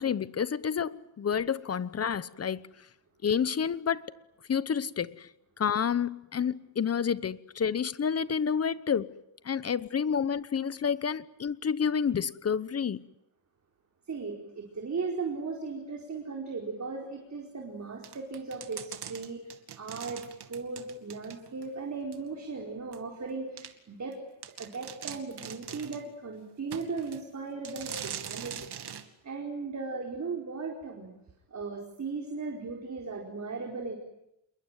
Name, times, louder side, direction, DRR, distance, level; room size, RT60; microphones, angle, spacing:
voice 1, 0.0-2.7 3.2-4.1 4.5-5.3 5.6-9.2 9.4-13.0, left 7 dB, 30° left, 0.9 m, -29 dB
voice 2, 14.1-24.2 24.6-28.7 29.2-31.1 31.5-34.0, right 4 dB, 35° right, 4.6 m, -37 dB
sound 1, 18.0-21.7 22.1-22.2 22.9-23.0 23.6-23.7 24.1-24.2 24.4-26.1 26.7-27.2 27.6-29.1, right 8 dB, 55° right, 2.4 m, -42 dB
28.5 x 22.0 x 9.2 m
cardioid pair, 135°, 48 cm